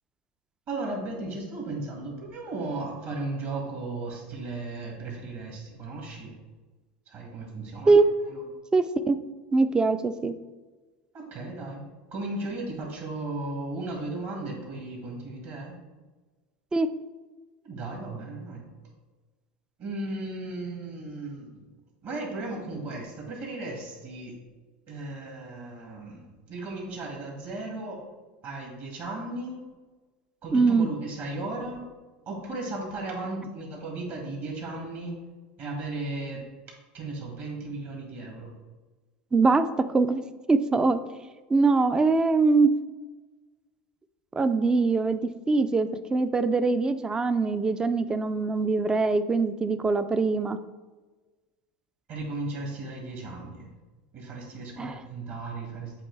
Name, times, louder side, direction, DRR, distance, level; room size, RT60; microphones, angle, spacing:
voice 1, 0.7-6.3 7.1-8.0 8.3-8.4 11.1-11.8 12.1-15.8 17.6-18.6 19.8-21.7 22.0-24.4 24.9-28.0 28.4-29.6 30.4-31.9 32.3-35.2 35.6-36.4 36.9-38.5 52.1-53.7 54.1-55.9, right 2 dB, 50° right, 0 dB, 1.9 m, -35 dB
voice 2, 8.7-9.2 9.5-10.3 16.7-16.9 30.5-30.9 39.3-40.2 40.5-41.0 41.5-42.7 44.3-50.6 54.8-55.0, right 3 dB, 15° right, 11 dB, 0.4 m, -23 dB
7.6 x 2.6 x 4.6 m, 1.3 s
supercardioid pair, 110°, 5 cm